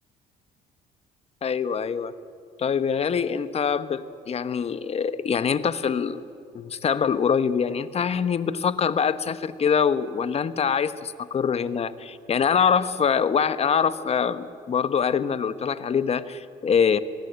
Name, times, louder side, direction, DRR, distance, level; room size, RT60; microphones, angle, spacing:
voice 1, 1.4-2.1 2.6-6.2 6.5-17.0, left 7 dB, 35° left, 13 dB, 1.1 m, -24 dB
24.5 x 20.5 x 8.1 m, 2.5 s
cardioid pair, 110°, 17 cm